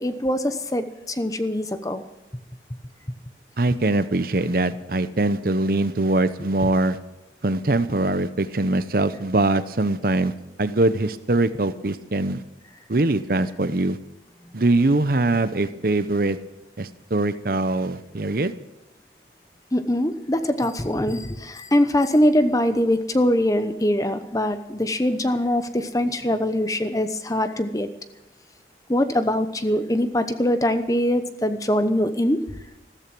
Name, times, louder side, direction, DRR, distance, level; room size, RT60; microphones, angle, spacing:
voice 1, 0.0-2.0 19.7-27.9 28.9-32.4, left 1 dB, 20° left, 10 dB, 0.9 m, -22 dB
voice 2, 3.6-7.0 7.4-10.3 10.6-12.4 12.9-14.0 14.5-16.4 16.8-18.5, right 2 dB, 50° right, 13 dB, 0.8 m, -22 dB
14.5 x 13.5 x 6.1 m, 0.95 s
head